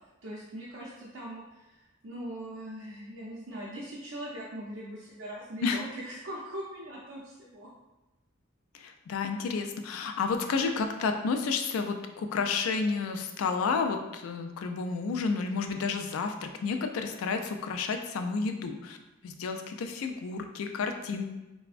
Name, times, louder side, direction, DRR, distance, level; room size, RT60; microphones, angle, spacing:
voice 1, 0.2-7.7, right 1 dB, 70° right, -7 dB, 0.5 m, -41 dB
voice 2, 8.7-19.0 19.2-21.3, left 4 dB, 85° left, 6 dB, 0.3 m, -31 dB
3.3 x 2.0 x 2.4 m, 1.1 s
head